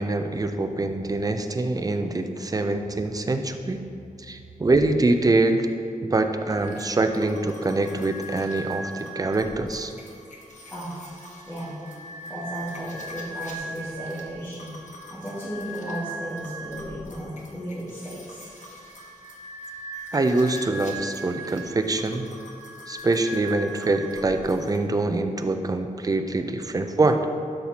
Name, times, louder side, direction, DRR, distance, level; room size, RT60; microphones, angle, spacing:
voice 1, 0.0-3.8 4.2-5.7 6.0-9.9 20.1-22.3 22.9-27.2, right 2 dB, 25° right, 7 dB, 0.4 m, -24 dB
sound 1, 6.5-24.8, right 1 dB, 60° left, 1.2 m, -40 dB
voice 2, 11.5-18.5, equal, 15° left, -11 dB, 2.0 m, -35 dB
12.5 x 5.7 x 2.9 m, 2.4 s
wide cardioid pair, 155°, 14 cm